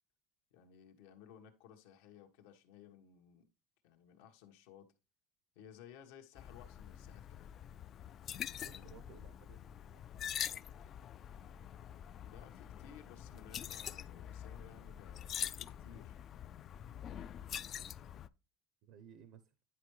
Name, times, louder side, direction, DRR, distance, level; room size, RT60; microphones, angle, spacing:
voice 1, 0.5-3.5 3.8-4.9 5.5-7.5 8.5-9.0 12.2-16.2, left 8 dB, 80° left, 1.4 m, -58 dB
sound 1, 6.4-18.3, left 10 dB, 35° left, 0.3 m, -45 dB
voice 2, 8.6-9.6 9.9-10.5 18.8-19.5, right 8 dB, 60° right, 0.7 m, -59 dB
10.0 x 4.5 x 3.2 m
cardioid pair, 145°, 0 cm